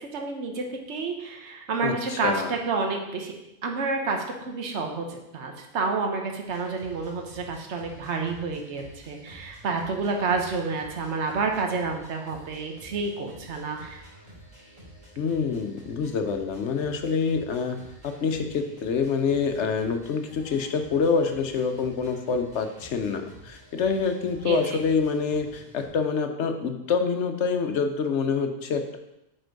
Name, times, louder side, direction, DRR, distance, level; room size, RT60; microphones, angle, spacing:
voice 1, 0.0-3.3 3.6-14.0 24.5-24.6, right 4 dB, 70° right, 2 dB, 1.3 m, -29 dB
voice 2, 1.8-2.5 15.2-29.0, left 5 dB, 70° left, 6 dB, 1.0 m, -26 dB
sound 1, 6.5-25.9, right 1 dB, 30° right, 3.2 m, -50 dB
7.9 x 4.4 x 5.2 m, 0.88 s
omnidirectional pair, 1.2 m